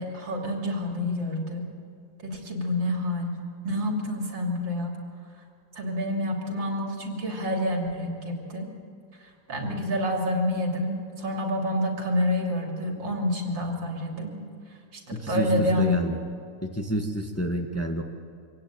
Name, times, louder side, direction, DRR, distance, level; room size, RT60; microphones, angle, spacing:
voice 1, 0.0-1.7 2.2-3.4 3.6-5.0 5.8-8.7 9.5-14.4 14.9-16.0, left 1 dB, 90° right, 2 dB, 3.8 m, -28 dB
voice 2, 15.1-16.2 16.6-18.0, right 1 dB, 10° left, 3 dB, 1.4 m, -29 dB
25.0 x 17.0 x 9.1 m, 2.3 s
omnidirectional pair, 2.0 m